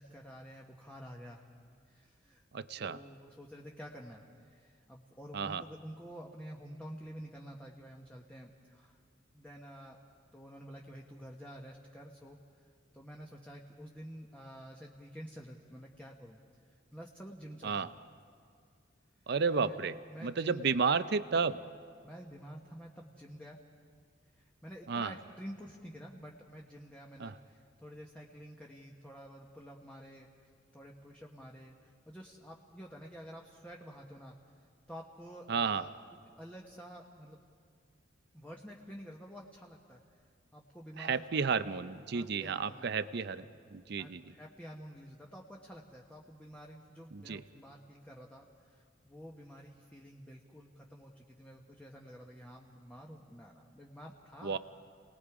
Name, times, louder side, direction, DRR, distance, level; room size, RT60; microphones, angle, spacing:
voice 1, 0.0-1.5 1.9-2.4 2.8-9.0 9.3-10.0 10.3-12.4 12.9-16.4 16.9-17.9 19.5-19.8 20.1-20.8 22.0-23.6 24.3-30.3 30.7-34.3 34.9-35.9 36.4-37.4 38.3-40.0 40.5-41.5 42.1-42.9 43.9-54.6, equal, 5° left, -1 dB, 1.2 m, -49 dB
voice 2, 2.5-3.0 5.3-5.6 17.6-17.9 19.3-20.0 20.2-21.6 24.9-25.1 27.2-27.3 35.5-35.8 41.0-43.5 43.7-44.2 47.1-47.4 54.4-54.6, right 5 dB, 60° right, 14 dB, 0.6 m, -32 dB
30.0 x 19.5 x 4.9 m, 2.2 s
head